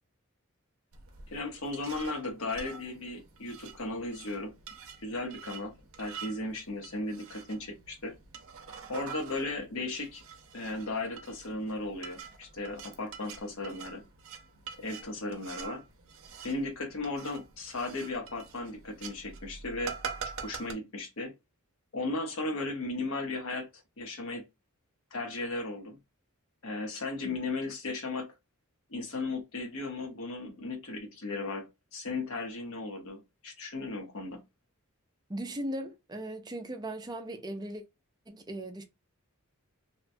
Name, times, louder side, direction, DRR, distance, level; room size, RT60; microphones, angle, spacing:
sound 1, 0.9-20.7, right 6 dB, 65° right, 0.6 m, -46 dB
voice 1, 1.3-4.5 5.0-8.1 8.9-10.2 10.5-14.0 14.8-15.8 16.4-19.9 20.4-21.3 21.9-23.7 24.0-24.4 25.1-26.0 26.6-28.3 28.9-34.4, left 2 dB, 65° left, 0.8 m, -36 dB
voice 2, 35.3-37.8 38.3-38.8, right 1 dB, 20° right, 0.4 m, -38 dB
2.8 x 2.2 x 2.6 m
head